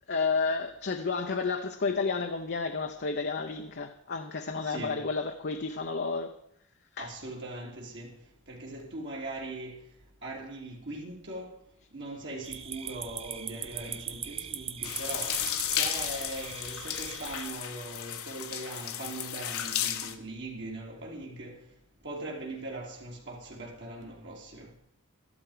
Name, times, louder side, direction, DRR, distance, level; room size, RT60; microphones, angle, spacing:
voice 1, 0.1-6.3 7.0-7.1, left 4 dB, 50° left, 0.8 m, -31 dB
voice 2, 4.6-5.0 7.0-8.1 8.5-9.7 10.2-11.5 11.9-15.4 15.8-21.6 22.0-24.7, right 2 dB, 55° right, 3.0 m, -40 dB
sound 1, 12.4-17.5, right 8 dB, 25° right, 0.6 m, -40 dB
sound 2, 14.8-20.1, left 10 dB, 75° left, 1.2 m, -34 dB
13.0 x 12.0 x 5.0 m
head